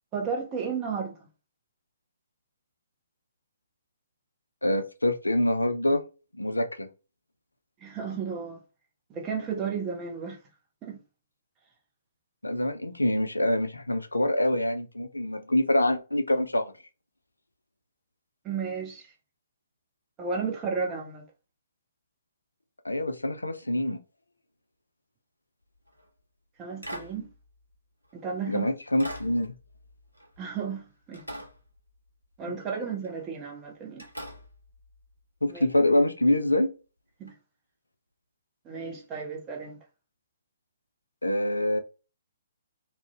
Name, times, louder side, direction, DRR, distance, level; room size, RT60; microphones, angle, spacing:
voice 1, 0.1-1.2 7.8-8.6 9.1-10.4 10.8-11.0 18.4-19.1 20.2-21.3 26.6-27.3 28.1-28.7 30.4-31.4 32.4-34.1 35.5-35.6 37.2-37.3 38.6-39.8, right 5 dB, 20° right, 0.6 m, -33 dB
voice 2, 4.6-6.0 6.4-6.9 12.4-16.7 22.8-24.0 28.5-29.6 35.4-36.7 41.2-41.8, left 1 dB, 80° left, 0.4 m, -25 dB
sound 1, 25.8-26.1 26.8-28.3 29.0-30.8 31.1-32.4 33.0-33.3 34.0-35.9 37.3-37.4, equal, 90° right, 0.7 m, -44 dB
2.4 x 2.0 x 2.5 m
figure-of-eight pair, 130°, 0 cm